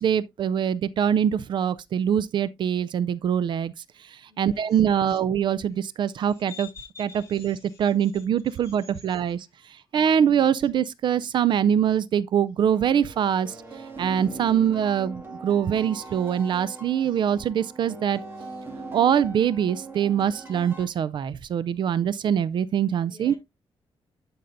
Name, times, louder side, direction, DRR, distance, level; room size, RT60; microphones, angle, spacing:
voice 1, 0.0-3.7 4.4-6.7 7.0-9.4 9.9-13.5 14.0-18.2 18.9-23.3, right 8 dB, 55° right, 0.4 m, -23 dB
voice 2, 4.3-5.2 5.7-5.8 6.2-9.0 10.1-10.4 23.1-23.4, left 5 dB, 30° left, 3.9 m, -48 dB
sound 1, 12.7-20.9, right 2 dB, 25° right, 2.1 m, -41 dB
12.0 x 5.4 x 2.6 m
wide cardioid pair, 160°, 9 cm